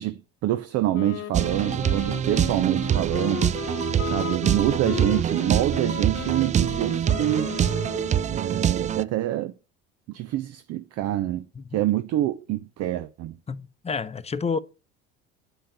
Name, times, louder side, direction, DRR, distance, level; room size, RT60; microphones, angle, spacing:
voice 1, 0.0-3.5 4.1-7.5 8.3-9.5 10.1-11.5 11.7-13.4, right 13 dB, 50° right, 0.8 m, -26 dB
Wind instrument woodwind instrument, 0.9-8.5, left 10 dB, 40° left, 1.0 m, -35 dB
sound 1, 1.3-9.0, right 9 dB, 20° right, 0.4 m, -25 dB
voice 2, 13.5-14.6, left 5 dB, 20° left, 0.9 m, -30 dB
9.9 x 5.6 x 6.6 m
hypercardioid pair, 65°, 33 cm